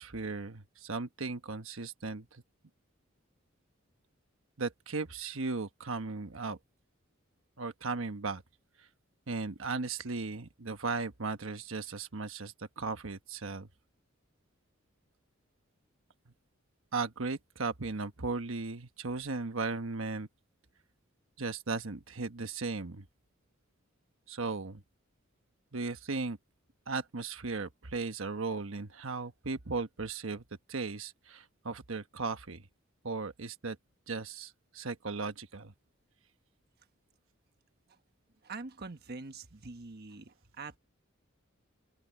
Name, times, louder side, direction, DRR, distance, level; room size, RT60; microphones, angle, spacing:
voice 1, 0.0-2.4 4.6-6.6 7.6-8.4 9.3-13.7 16.9-20.3 21.4-23.0 24.3-24.8 25.7-26.4 26.9-30.4 30.7-32.6 33.0-33.8 34.1-35.7, right 4 dB, 75° right, 1.2 m, -36 dB
voice 2, 38.4-40.8, right 3 dB, 50° right, 1.3 m, -44 dB
head